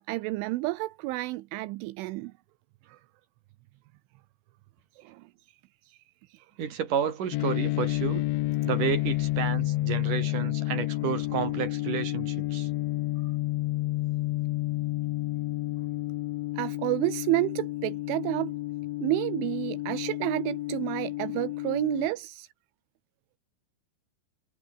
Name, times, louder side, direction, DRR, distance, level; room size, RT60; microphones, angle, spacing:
voice 1, 0.0-2.3 2.9-3.0 5.0-5.3 5.9-6.0 6.3-6.5 13.2-13.3 16.5-18.6 19.0-22.5, right 19 dB, 85° right, 3.2 m, -30 dB
voice 2, 6.6-8.2 8.6-12.7, right 7 dB, 45° right, 4.6 m, -31 dB
sound 1, 7.3-22.1, left 18 dB, 80° left, 3.2 m, -30 dB
omnidirectional pair, 5.6 m